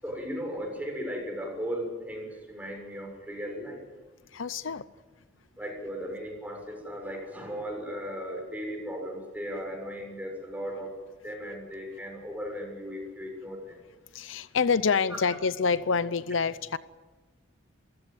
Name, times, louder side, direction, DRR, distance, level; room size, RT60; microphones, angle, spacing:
voice 1, 0.0-3.8 5.6-10.9 11.2-13.8, equal, 10° right, 1 dB, 7.0 m, -36 dB
voice 2, 4.3-4.8 14.1-16.8, left 5 dB, 80° left, 16 dB, 0.7 m, -27 dB
28.0 x 15.5 x 9.1 m, 1.3 s
head